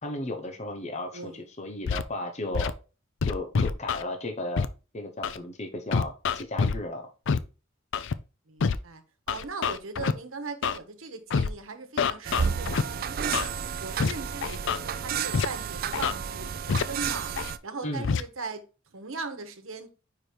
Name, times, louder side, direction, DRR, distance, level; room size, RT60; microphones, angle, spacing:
voice 1, 0.0-2.7 3.3-4.7 4.9-7.1 17.8-18.1, left 1 dB, 35° left, 0.8 m, -34 dB
voice 2, 1.1-1.5 8.5-17.3 17.6-19.9, right 4 dB, 75° right, 1.2 m, -39 dB
Scratching (performance technique), 1.9-2.0 2.5-2.7 3.2-4.0 4.6-4.7 5.2-5.4 5.9-6.8 7.3-7.4 7.9-8.1 8.6-8.8 9.3-10.1 10.6-10.8 11.3-11.5 12.0-12.8 13.3-13.5 14.0-14.1 14.4-14.8 15.3-15.5 15.9-16.1 16.7-16.8 17.4-17.5 18.0-18.2, left 5 dB, 65° left, 0.4 m, -26 dB
sound 1, 12.2-17.6, right 7 dB, 45° right, 0.4 m, -31 dB
5.0 x 4.7 x 4.4 m
head